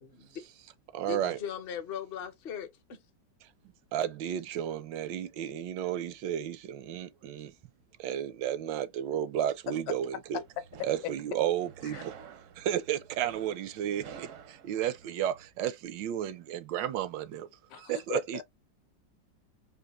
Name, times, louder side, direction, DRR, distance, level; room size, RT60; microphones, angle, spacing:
voice 1, 0.0-0.5 1.0-3.0, left 8 dB, 50° left, 0.7 m, -39 dB
voice 2, 0.9-1.4 3.9-7.5 8.0-10.4 10.8-12.1 12.6-17.5 17.7-18.4, right 10 dB, 85° right, 1.3 m, -33 dB
sound 1, 10.3-15.5, right 7 dB, 70° right, 0.7 m, -50 dB
voice 3, 17.7-18.4, left 12 dB, 65° left, 1.1 m, -39 dB
3.9 x 2.7 x 2.9 m
omnidirectional pair, 1.9 m